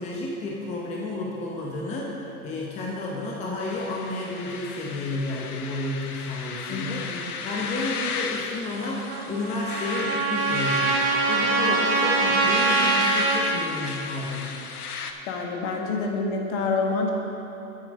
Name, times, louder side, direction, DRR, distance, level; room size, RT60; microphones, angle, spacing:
voice 1, 0.0-14.6, left 2 dB, 15° left, -2 dB, 0.7 m, -31 dB
sound 1, 3.6-15.1, left 5 dB, 90° left, 0.8 m, -33 dB
voice 2, 6.7-7.2 11.7-11.8 15.3-17.1, left 4 dB, 50° left, 1 dB, 1.5 m, -27 dB
Trumpet, 9.1-13.6, right 4 dB, 70° right, 1.8 m, -24 dB
8.8 x 7.2 x 5.3 m, 3.0 s
hypercardioid pair, 125°, 44 cm